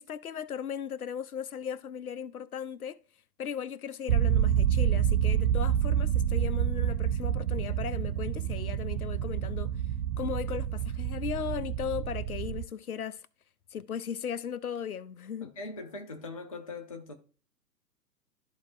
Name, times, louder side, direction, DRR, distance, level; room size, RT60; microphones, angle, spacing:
voice 1, 0.0-3.0 3.4-9.7 10.2-13.2 13.7-15.5, left 8 dB, 60° left, 0.7 m, -37 dB
sound 1, 4.1-12.6, right 10 dB, 70° right, 0.6 m, -28 dB
voice 2, 15.4-17.1, left 3 dB, 25° left, 0.4 m, -41 dB
13.5 x 4.6 x 2.5 m
figure-of-eight pair, 120°, 49 cm